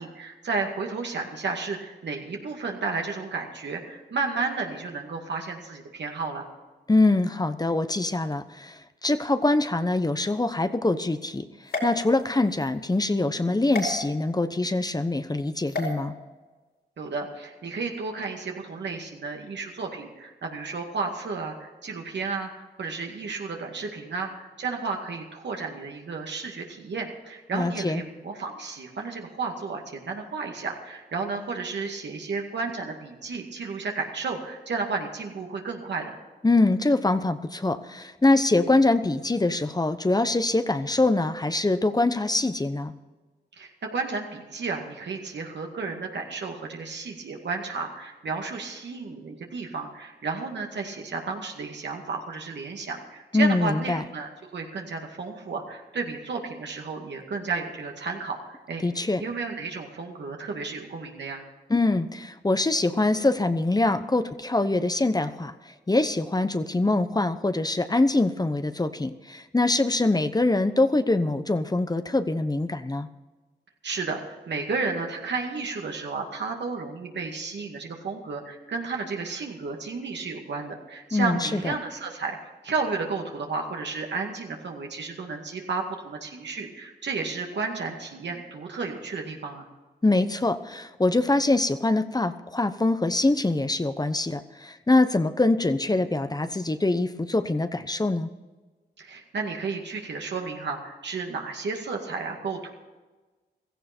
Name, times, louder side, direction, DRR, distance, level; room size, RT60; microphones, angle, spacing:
voice 1, 0.0-6.4 17.0-36.2 43.6-61.4 73.8-89.7 99.0-102.7, right 4 dB, 75° right, 1 dB, 2.2 m, -32 dB
voice 2, 6.9-11.5 11.8-16.1 27.5-28.0 36.4-42.9 53.3-54.0 58.8-59.2 61.7-73.1 81.1-81.7 90.0-98.3, left 2 dB, 20° left, 10 dB, 0.9 m, -24 dB
sound 1, 11.7-12.7 13.7-13.9 15.7-15.9, left 2 dB, 70° left, 5.0 m, -32 dB
16.0 x 14.5 x 4.4 m, 1.2 s
cardioid pair, 65°, 18 cm